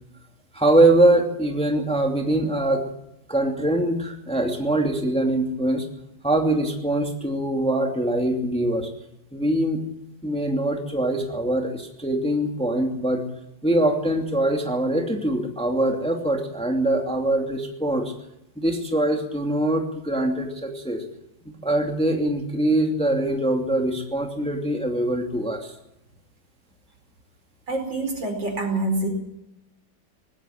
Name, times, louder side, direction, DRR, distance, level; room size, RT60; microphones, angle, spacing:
voice 1, 0.5-2.8 3.3-5.9 6.2-8.9 9.3-9.8 10.2-13.2 13.6-18.1 18.6-21.0 21.5-25.7, right 1 dB, 5° left, 2 dB, 2.5 m, -23 dB
voice 2, 27.7-29.1, right 2 dB, 75° right, 4 dB, 5.6 m, -26 dB
19.0 x 16.5 x 8.9 m, 0.87 s
omnidirectional pair, 2.1 m